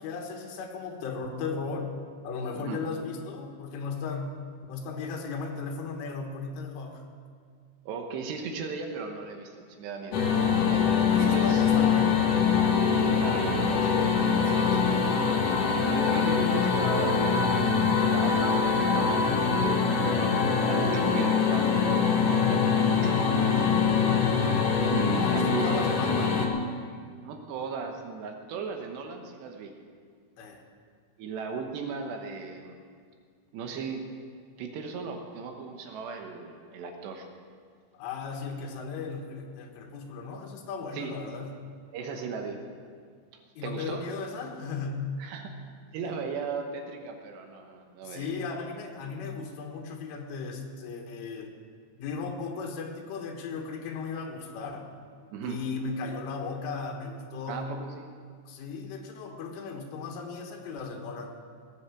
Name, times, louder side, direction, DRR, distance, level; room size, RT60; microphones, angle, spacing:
voice 1, 0.0-1.9 2.2-4.3 4.7-7.0 10.3-10.6 11.1-12.3 14.5-15.4 25.2-26.4 30.4-30.6 37.9-41.5 43.6-45.1 48.0-51.5 52.0-54.9 55.4-57.7 58.5-61.3, left 4 dB, 90° left, 2 dB, 3.9 m, -36 dB
voice 2, 7.9-10.2 10.7-10.9 11.2-11.7 12.9-13.9 15.8-19.3 19.9-22.1 22.5-23.2 24.8-25.9 27.2-29.7 31.2-32.8 33.5-34.0 34.6-37.3 40.9-41.1 41.9-42.6 43.6-44.0 45.2-45.6 45.9-48.4 55.3-55.6 57.5-58.1, right 5 dB, 75° right, 4 dB, 3.0 m, -36 dB
sound 1, 10.1-26.5, left 6 dB, 70° left, 2.0 m, -24 dB
18.5 x 7.9 x 7.2 m, 2.1 s
omnidirectional pair, 5.5 m